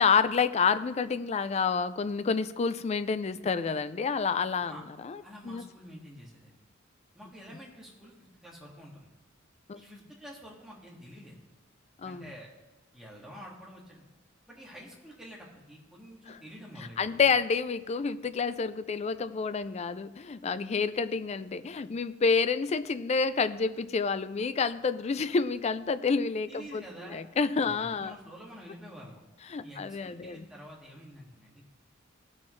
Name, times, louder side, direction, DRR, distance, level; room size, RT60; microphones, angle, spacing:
voice 1, 0.0-5.6 9.7-9.8 12.0-12.3 16.3-16.4 17.0-26.8 27.1-28.1 29.5-30.5, left 5 dB, 35° left, 13 dB, 0.4 m, -29 dB
voice 2, 5.2-6.6 7.1-8.1 8.4-9.1 9.8-11.4 12.0-12.5 12.9-14.0 14.5-17.2 26.5-27.2 27.6-29.2 29.6-31.6, equal, 5° right, -5 dB, 1.9 m, -48 dB
16.0 x 6.3 x 3.2 m, 1.1 s
head